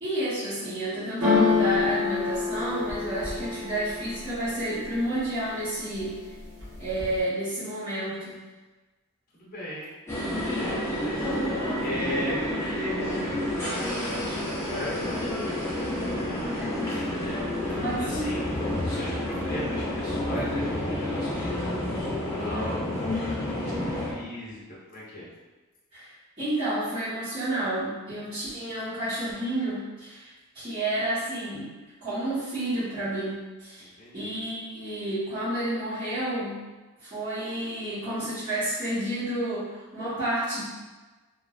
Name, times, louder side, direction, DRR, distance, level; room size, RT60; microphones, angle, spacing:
voice 1, 0.0-6.2 6.8-8.4 17.8-18.4 25.9-26.1 26.4-30.3 30.5-31.7 32.0-33.9 34.1-36.6 37.0-40.6, right 1 dB, 25° right, -18 dB, 1.1 m, -30 dB
sound 1, 1.2-5.1 5.5-6.1 6.4-7.2, left 4 dB, 85° right, 1.2 m, -27 dB
voice 2, 9.3-9.9 10.5-18.4 18.8-25.3 33.8-34.3, left 1 dB, 40° left, -7 dB, 0.7 m, -38 dB
sound 2, 10.1-24.1, left 1 dB, 10° left, 0.5 m, -29 dB
3.0 x 2.4 x 2.3 m, 1.2 s
head